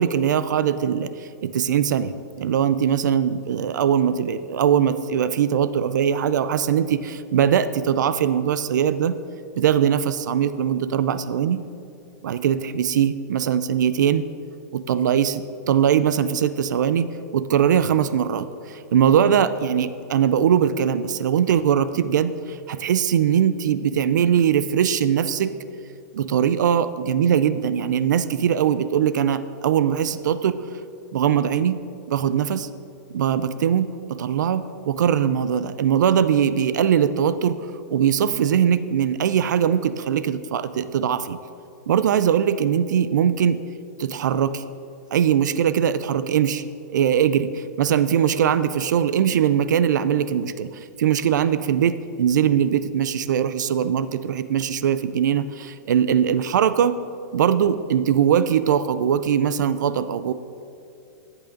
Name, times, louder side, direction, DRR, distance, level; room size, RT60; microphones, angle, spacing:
voice 1, 0.0-9.2 9.6-11.6 12.2-14.3 14.7-25.5 26.1-30.6 31.1-31.8 32.1-32.7 33.1-37.6 37.9-41.4 41.9-43.6 44.0-44.6 45.1-46.6 46.9-57.0 57.3-60.3, right 8 dB, 80° right, 14 dB, 0.4 m, -21 dB
12.0 x 8.1 x 2.6 m, 2.6 s
hypercardioid pair, 140°, 10 cm